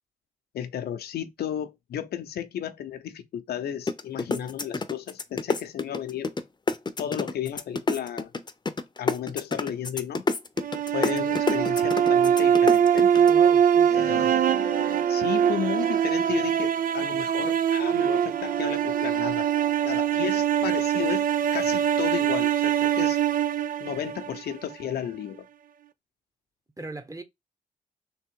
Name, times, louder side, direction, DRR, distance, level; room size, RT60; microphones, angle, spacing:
voice 1, 0.5-6.3 7.0-8.3 9.0-10.2 10.9-13.1 13.9-19.5 19.8-23.2 23.8-25.5, left 9 dB, 80° left, 0.7 m, -33 dB
sound 1, 3.9-6.4 6.7-13.3, left 3 dB, 25° left, 0.7 m, -27 dB
sound 2, 10.6-24.7, right 9 dB, 60° right, 0.4 m, -23 dB
voice 2, 13.2-14.4 26.8-27.2, right 2 dB, 20° right, 1.1 m, -39 dB
3.6 x 2.9 x 4.6 m
cardioid pair, 60°, 16 cm